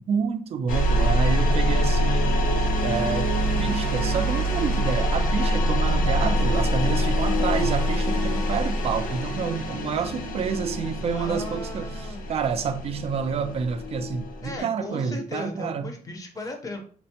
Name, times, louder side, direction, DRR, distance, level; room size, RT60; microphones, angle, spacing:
voice 1, 0.1-2.3 2.8-3.3 3.6-15.9, right 6 dB, 45° right, 0.4 m, -28 dB
sound 1, 0.7-14.6, equal, 70° left, 0.6 m, -25 dB
voice 2, 11.1-12.3 14.4-16.8, left 2 dB, 25° left, 0.6 m, -37 dB
4.4 x 2.1 x 2.8 m
wide cardioid pair, 170°, 14 cm